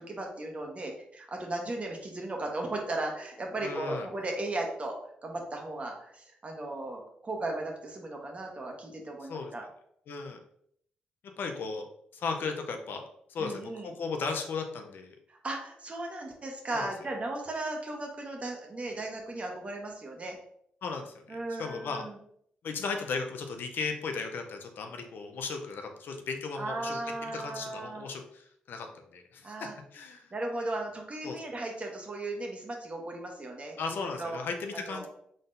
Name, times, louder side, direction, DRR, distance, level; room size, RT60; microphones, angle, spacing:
voice 1, 0.0-9.6 13.4-13.9 15.3-20.4 21.3-22.2 26.5-28.1 29.4-29.8 30.3-34.4 34.7-35.1, right 2 dB, 35° right, 1 dB, 1.1 m, -36 dB
voice 2, 3.6-4.1 9.3-9.5 10.1-10.4 11.4-11.8 12.1-13.0 13.3-15.2 16.7-16.9 20.8-22.0 22.6-28.9 29.1-30.3 31.2-31.4 33.8-35.1, left 4 dB, 65° left, 4 dB, 0.6 m, -36 dB
3.9 x 3.7 x 2.6 m, 0.68 s
supercardioid pair, 55°, 4 cm